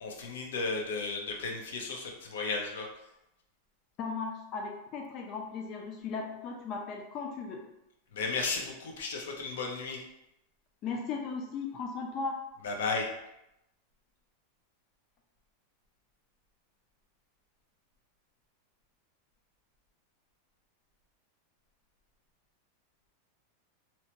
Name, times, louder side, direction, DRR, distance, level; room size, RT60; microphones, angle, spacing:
voice 1, 0.0-2.8 8.1-10.0 12.6-13.1, left 4 dB, 90° left, 1 dB, 0.6 m, -34 dB
voice 2, 4.0-7.6 10.8-12.4, left 4 dB, 35° left, 1 dB, 0.3 m, -37 dB
2.7 x 2.1 x 2.9 m, 0.86 s
supercardioid pair, 155°, 0 cm